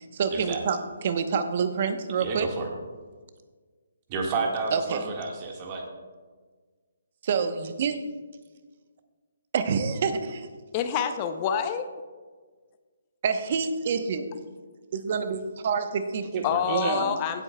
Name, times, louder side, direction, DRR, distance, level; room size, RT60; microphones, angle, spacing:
voice 1, 0.0-2.5 4.7-5.0 7.2-8.0 9.5-10.5 13.2-14.3 14.9-17.2, right 6 dB, 45° right, 9 dB, 0.9 m, -27 dB
voice 2, 2.2-2.7 4.1-5.8 16.3-17.0, right 4 dB, 30° right, 0 dB, 1.7 m, -31 dB
voice 3, 10.7-11.9 16.4-17.4, left 8 dB, 30° left, 9 dB, 0.5 m, -27 dB
16.0 x 8.0 x 2.3 m, 1.4 s
figure-of-eight pair, 145°, 0 cm